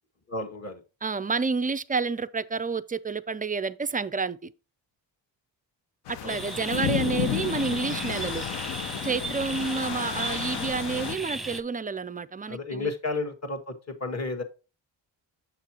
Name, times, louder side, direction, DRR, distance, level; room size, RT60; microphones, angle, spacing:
voice 1, 0.3-0.8 6.2-6.4 9.0-9.2 12.5-14.4, left 3 dB, 35° left, 1.7 m, -33 dB
voice 2, 1.0-4.5 6.1-8.5 9.0-12.9, right 4 dB, 20° right, 0.3 m, -29 dB
sound 1, 6.1-11.2, left 11 dB, 70° left, 0.7 m, -32 dB
sound 2, 6.3-11.6, right 2 dB, ahead, 0.9 m, -36 dB
7.3 x 6.7 x 2.9 m
cardioid pair, 75°, 46 cm